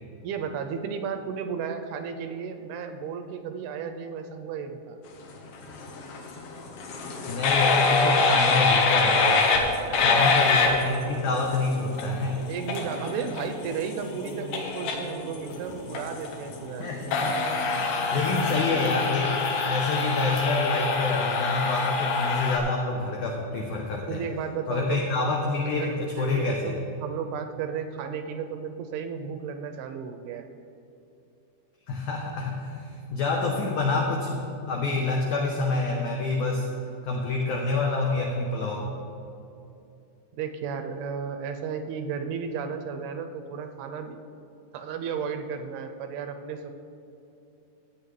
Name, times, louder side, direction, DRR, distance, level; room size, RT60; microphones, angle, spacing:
voice 1, 0.2-5.0 7.5-7.6 9.8-11.1 12.5-16.9 24.1-25.0 25.7-30.5 40.3-44.2 44.7-46.7, right 6 dB, 80° right, 6 dB, 2.3 m, -34 dB
sound 1, 5.6-22.6, left 4 dB, 70° left, 2.6 m, -26 dB
voice 2, 7.3-9.5 10.0-12.4 16.8-17.4 18.1-19.4 19.7-24.2 24.7-26.8 31.9-36.7 37.0-38.9, left 3 dB, 90° left, 0 dB, 1.7 m, -27 dB
15.0 x 8.5 x 3.2 m, 2.8 s
omnidirectional pair, 4.6 m